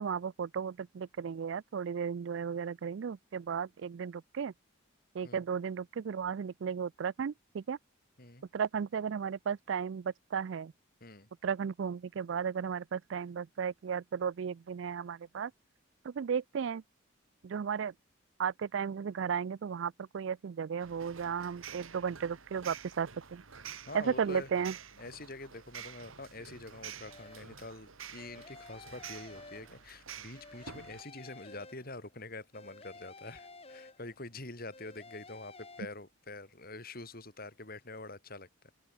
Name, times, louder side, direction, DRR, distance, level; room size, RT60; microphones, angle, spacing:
voice 1, 0.0-4.5 5.1-7.8 8.5-10.7 11.4-15.5 16.0-16.8 17.4-17.9 18.4-23.4 23.9-24.7, right 7 dB, 60° right, 0.4 m, -34 dB
sound 1, 20.8-31.0, right 7 dB, 85° right, 2.1 m, -49 dB
voice 2, 23.9-24.5 25.0-38.7, left 2 dB, 45° left, 5.0 m, -46 dB
sound 2, 27.1-27.6 28.2-30.0 30.3-32.1 32.5-34.3 34.7-35.8, left 3 dB, 30° left, 5.3 m, -52 dB
head